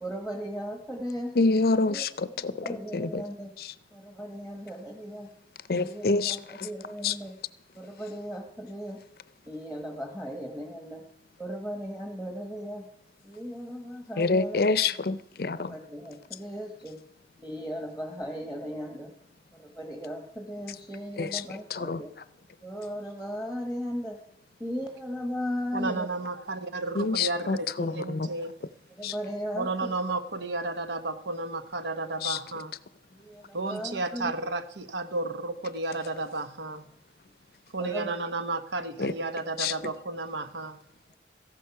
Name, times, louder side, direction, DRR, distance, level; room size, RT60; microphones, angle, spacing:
voice 1, 0.0-1.3 1.9-2.0 2.6-3.5 3.9-5.3 5.7-7.3 7.7-9.0 9.5-11.0 11.4-12.8 13.2-14.6 15.7-17.0 17.4-19.1 19.5-22.1 22.6-24.2 24.6-26.1 29.0-29.9 33.1-34.3 37.8-38.1, equal, 5° right, 3 dB, 1.2 m, -36 dB
voice 2, 1.3-3.2 3.6-3.7 5.7-6.7 7.0-7.2 14.2-15.8 21.2-22.0 27.0-28.3 29.0-29.2 32.2-32.4 39.0-39.1 39.6-39.7, left 3 dB, 55° left, 16 dB, 0.5 m, -27 dB
voice 3, 25.7-28.6 29.5-32.8 33.5-36.9 37.7-40.8, right 2 dB, 80° right, 11 dB, 1.0 m, -32 dB
14.0 x 11.0 x 5.8 m, 0.78 s
head